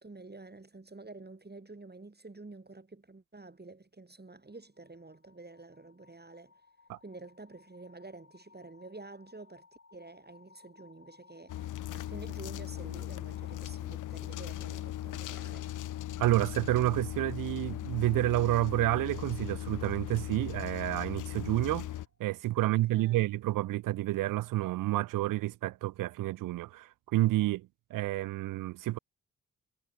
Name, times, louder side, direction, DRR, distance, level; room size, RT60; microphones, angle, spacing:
voice 1, 0.0-6.5 7.0-15.7 22.6-23.3, right 3 dB, 30° right, 6.1 m, -49 dB
sound 1, 4.5-22.2, left 4 dB, 40° left, 5.6 m, -61 dB
sound 2, 11.5-22.1, left 13 dB, 60° left, 0.6 m, -38 dB
voice 2, 16.2-21.9 22.2-29.0, right 16 dB, 65° right, 0.5 m, -29 dB
hypercardioid pair, 40°, 35 cm